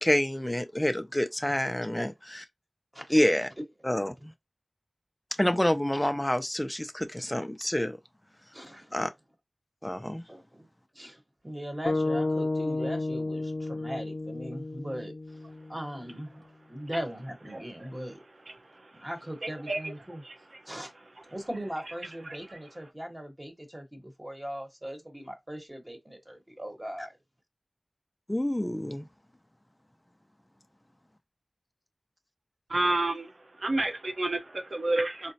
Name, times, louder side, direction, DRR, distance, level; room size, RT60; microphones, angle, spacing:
voice 1, 0.0-2.4 3.1-3.5 3.8-4.3 5.4-8.0 8.9-9.1 9.8-10.2 28.3-29.1, left 1 dB, 15° left, 0.4 m, -27 dB
voice 2, 8.5-8.9 10.3-10.7 10.9-15.1 15.7-16.3 16.7-18.2 18.9-20.2 20.6-21.0 21.3-27.2, equal, 20° right, 1.1 m, -39 dB
sound 1, 11.8-16.1, left 2 dB, 75° left, 0.4 m, -32 dB
voice 3, 19.4-19.9 20.2-20.3 32.7-33.3 33.6-35.3, right 2 dB, 70° right, 0.7 m, -29 dB
3.9 x 2.1 x 2.7 m
wide cardioid pair, 65°, 0 cm